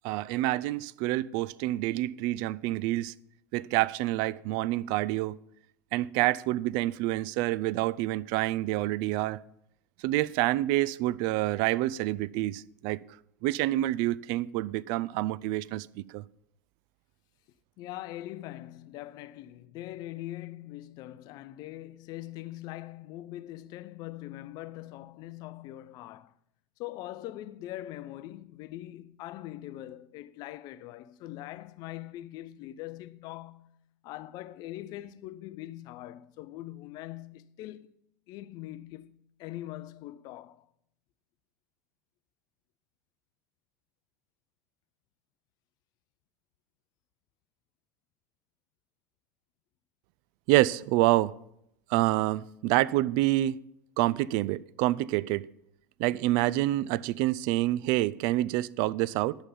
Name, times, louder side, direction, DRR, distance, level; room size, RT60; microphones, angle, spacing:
voice 1, 0.0-3.1 3.5-5.4 5.9-9.4 10.0-13.0 13.4-16.2 50.5-51.3 51.9-53.6 54.0-55.5 56.0-59.4, right 16 dB, 50° right, 0.3 m, -27 dB
voice 2, 17.8-26.3 26.8-33.7 34.0-37.9 38.3-40.7, left 15 dB, 45° left, 0.5 m, -42 dB
11.0 x 7.0 x 5.4 m
figure-of-eight pair, 75°, 10 cm